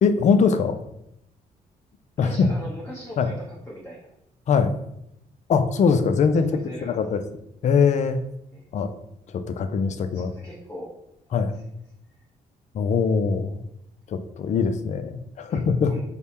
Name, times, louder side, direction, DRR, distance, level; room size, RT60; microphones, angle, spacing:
voice 1, 0.0-0.8 2.2-2.5 3.2-3.3 4.5-4.7 5.5-6.5 6.8-7.2 7.6-8.2 8.7-8.9 9.5-10.3 11.3-11.5 12.7-13.6 14.1-15.9, left 5 dB, 50° left, 10 dB, 0.4 m, -21 dB
voice 2, 2.2-4.1 6.4-7.0 8.5-8.6 10.1-10.9 11.3-11.6 15.5-15.6 15.9-16.0, equal, 10° left, -5 dB, 0.9 m, -40 dB
3.4 x 2.1 x 4.2 m, 0.81 s
cardioid pair, 80°, 16 cm